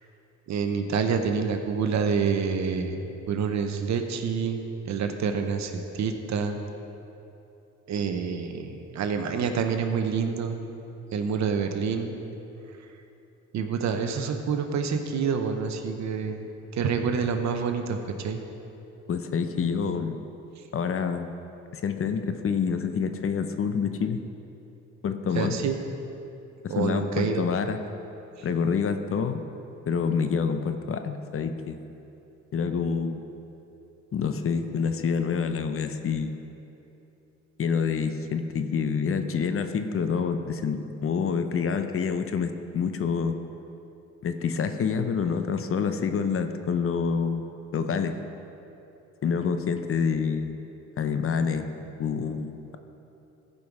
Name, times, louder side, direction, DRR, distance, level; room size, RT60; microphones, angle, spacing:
voice 1, 0.5-3.0 3.3-6.6 7.9-10.6 11.1-12.2 13.5-18.4 25.3-25.8 26.7-27.5 28.4-28.5, right 6 dB, 65° right, 6 dB, 0.9 m, -27 dB
voice 2, 19.1-20.2 20.7-21.3 21.7-24.2 25.0-25.6 26.6-27.8 28.4-29.4 29.9-31.8 32.5-33.2 34.1-36.4 37.6-43.3 44.2-47.4 47.7-48.2 49.2-50.6 51.0-52.8, left 6 dB, 45° left, 8 dB, 0.7 m, -27 dB
15.0 x 5.5 x 4.7 m, 2.9 s
cardioid pair, 90°, 30 cm